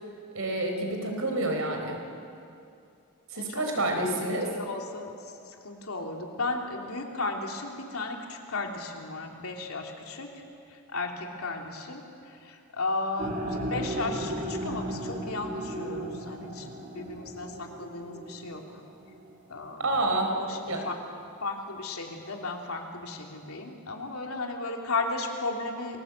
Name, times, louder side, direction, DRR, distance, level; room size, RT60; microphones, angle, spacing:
voice 1, 0.3-2.0 3.3-4.6 19.8-20.4 20.7-20.8, right 2 dB, 70° right, 3 dB, 4.3 m, -28 dB
voice 2, 4.4-5.1 5.5-10.4 10.9-18.6 19.5-21.0 21.4-26.0, left 3 dB, 75° left, 1 dB, 3.1 m, -35 dB
sound 1, 13.2-19.3, right 1 dB, 35° right, 3.1 m, -36 dB
28.0 x 21.5 x 8.2 m, 2.6 s
head